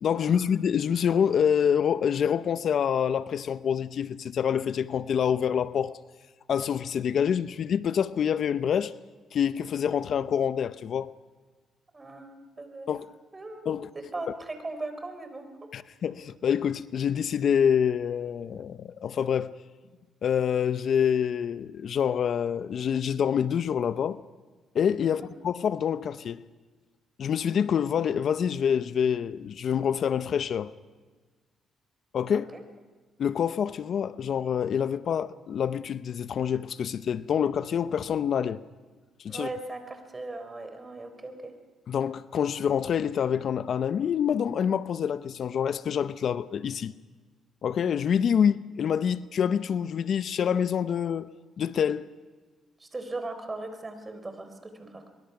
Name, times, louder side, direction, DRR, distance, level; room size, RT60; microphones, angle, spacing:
voice 1, 0.0-6.0 6.5-8.9 9.3-11.1 12.9-13.1 13.7-13.9 15.7-19.5 20.2-24.2 24.7-26.4 27.2-30.7 32.1-32.5 33.2-38.6 39.2-39.5 41.9-46.9 47.6-51.3 51.6-52.0, left 8 dB, 60° left, 0.6 m, -26 dB
voice 2, 11.9-12.9 13.3-13.6 13.9-15.7 25.0-25.3 32.3-32.6 39.3-41.5 52.8-55.1, right 2 dB, 25° right, 4.0 m, -38 dB
23.0 x 23.0 x 5.9 m
cardioid pair, 90°, 0 cm